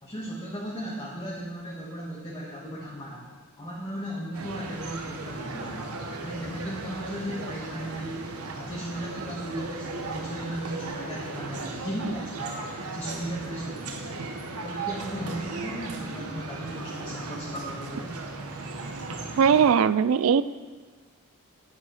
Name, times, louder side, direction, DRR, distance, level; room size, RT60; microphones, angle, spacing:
voice 1, 0.0-3.3 3.6-5.9 6.2-8.3 8.5-14.2 14.6-18.2, equal, 20° left, -7 dB, 1.6 m, -36 dB
sound 1, 4.3-19.7, right 3 dB, 85° right, 1.1 m, -36 dB
voice 2, 19.4-20.4, right 7 dB, 65° right, 15 dB, 0.3 m, -19 dB
9.4 x 9.0 x 4.0 m, 1.3 s
head